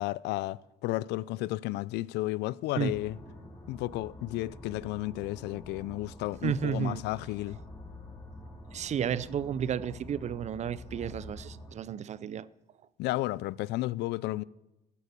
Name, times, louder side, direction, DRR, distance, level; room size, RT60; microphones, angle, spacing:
voice 1, 0.0-3.2 3.7-7.6 13.0-14.4, left 18 dB, 85° left, 0.4 m, -33 dB
sound 1, 2.8-11.8, left 1 dB, 20° left, 2.6 m, -47 dB
voice 2, 6.4-7.0 8.7-12.5, right 8 dB, 45° right, 0.5 m, -32 dB
14.0 x 8.4 x 8.2 m
cardioid pair, 110°, 17 cm